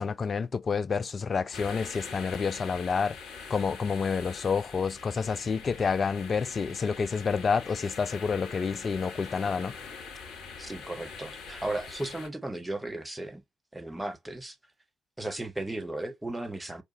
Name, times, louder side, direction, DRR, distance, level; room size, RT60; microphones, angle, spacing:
voice 1, 0.0-3.2 3.5-9.7, left 5 dB, 35° left, 0.3 m, -29 dB
sound 1, 1.5-12.3, left 5 dB, 60° left, 1.1 m, -43 dB
voice 2, 10.6-13.4 13.7-14.6 15.2-16.8, right 2 dB, 10° right, 0.9 m, -35 dB
4.8 x 2.2 x 2.8 m
figure-of-eight pair, 45°, 0 cm